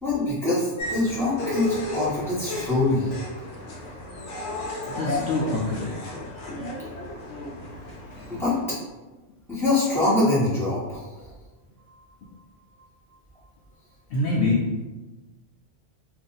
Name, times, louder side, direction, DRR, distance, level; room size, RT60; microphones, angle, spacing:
voice 1, 0.0-3.1 8.3-8.5 9.5-11.0, left 2 dB, ahead, -10 dB, 1.1 m, -24 dB
sound 1, 0.8-8.6, left 2 dB, 90° left, 1.0 m, -33 dB
voice 2, 4.9-5.9 14.1-14.8, left 2 dB, 65° left, -5 dB, 0.7 m, -25 dB
2.6 x 2.5 x 3.8 m, 1.2 s
omnidirectional pair, 1.2 m